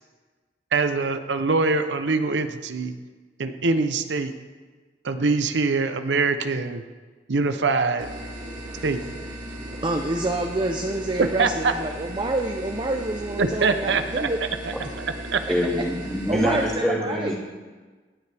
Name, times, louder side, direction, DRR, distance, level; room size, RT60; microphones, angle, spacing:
voice 1, 0.7-2.9 3.4-4.3 5.0-6.8 7.3-8.1 8.8-9.0 11.2-11.7 13.4-14.3 15.3-15.4, right 4 dB, 90° right, 9 dB, 0.7 m, -23 dB
sound 1, 8.0-16.8, equal, 50° right, 2.8 m, -37 dB
voice 2, 8.7-9.1 9.6-14.4 16.3-17.3, right 2 dB, 25° right, 3 dB, 0.6 m, -28 dB
voice 3, 15.5-17.4, equal, 5° left, -2 dB, 2.0 m, -25 dB
17.5 x 9.6 x 3.4 m, 1.4 s
head